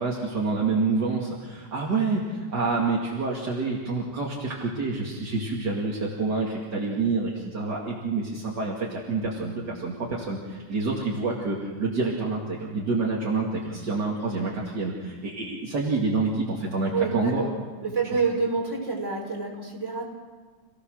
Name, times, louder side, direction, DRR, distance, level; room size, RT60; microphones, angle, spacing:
voice 1, 0.0-17.4, right 3 dB, 70° right, -3 dB, 3.0 m, -27 dB
voice 2, 16.9-17.5 17.8-20.0, right 4 dB, 40° right, -2 dB, 5.2 m, -27 dB
27.5 x 17.0 x 6.5 m, 1.4 s
omnidirectional pair, 1.9 m